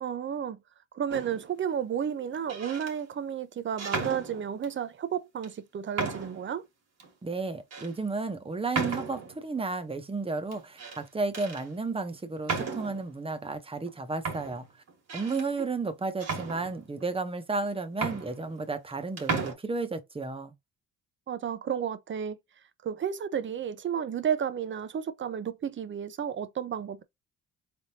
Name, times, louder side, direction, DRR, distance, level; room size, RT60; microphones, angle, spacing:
voice 1, 0.0-0.6 0.9-6.7 15.6-15.7 21.3-22.4 22.8-27.0, right 8 dB, 40° right, 0.7 m, -32 dB
sound 1, 1.1-1.5 2.3-2.9 3.8-4.8 5.4-5.5 6.0-6.5 7.0-7.1 7.7-7.9 8.7-9.4 10.5-11.0 11.3-11.6 12.4-13.1 13.9-14.0 14.2-15.5 16.2-17.1 17.6-17.7 17.9-18.9 19.2-19.5, right 4 dB, 55° right, 1.8 m, -34 dB
voice 2, 7.2-14.6 15.1-20.5, right 3 dB, 20° right, 1.0 m, -33 dB
4.1 x 3.5 x 2.8 m
cardioid pair, 90°, 30 cm